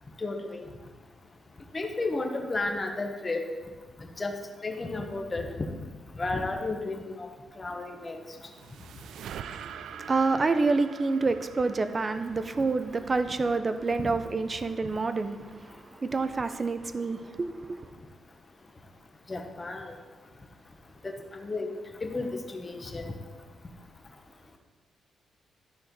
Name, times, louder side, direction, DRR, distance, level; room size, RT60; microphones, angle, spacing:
voice 1, 0.2-0.6 1.7-3.4 4.2-4.3 4.6-5.5 6.2-7.3 7.6-8.2 14.0-14.1 19.3-20.0 21.0-23.1, left 3 dB, 20° left, 4 dB, 0.9 m, -33 dB
sound 1, 8.0-13.4, right 8 dB, 85° right, 0.3 m, -45 dB
voice 2, 9.5-17.9, right 3 dB, 25° right, 10 dB, 0.5 m, -28 dB
13.0 x 4.4 x 5.1 m, 1.4 s
wide cardioid pair, 170°, 0 cm